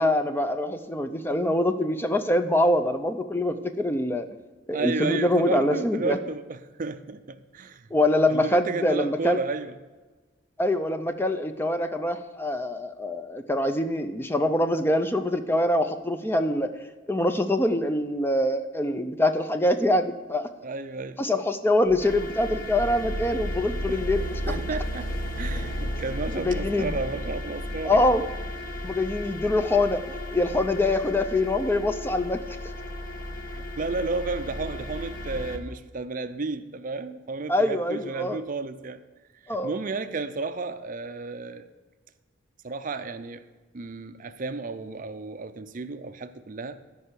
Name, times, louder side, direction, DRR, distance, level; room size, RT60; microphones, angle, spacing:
voice 1, 0.0-4.3 4.7-6.2 7.9-9.4 10.6-16.7 17.1-20.5 21.2-24.6 26.4-26.9 27.8-28.2 28.8-30.0 30.3-32.4 37.5-38.4 39.5-39.7, left 1 dB, 10° left, 0.4 m, -24 dB
voice 2, 4.7-7.9 8.3-9.8 20.6-21.2 23.9-24.0 24.5-25.1 25.4-28.1 33.5-39.0 39.4-41.7 42.6-43.4 43.7-46.8, right 3 dB, 40° right, 0.5 m, -32 dB
sound 1, 21.9-35.6, equal, 45° left, 1.1 m, -34 dB
13.0 x 5.6 x 6.8 m
head